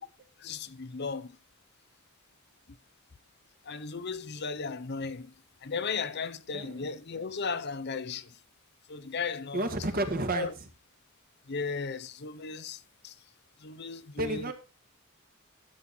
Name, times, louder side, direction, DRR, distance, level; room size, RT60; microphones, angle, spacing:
voice 1, 0.4-1.4 2.7-2.8 3.6-5.3 5.6-8.4 8.9-9.7 10.3-10.5 11.5-13.2 13.6-14.5, left 5 dB, 50° left, 0.8 m, -36 dB
voice 2, 9.5-10.5 14.2-14.5, right 1 dB, 45° right, 1.9 m, -30 dB
12.5 x 7.6 x 4.4 m
head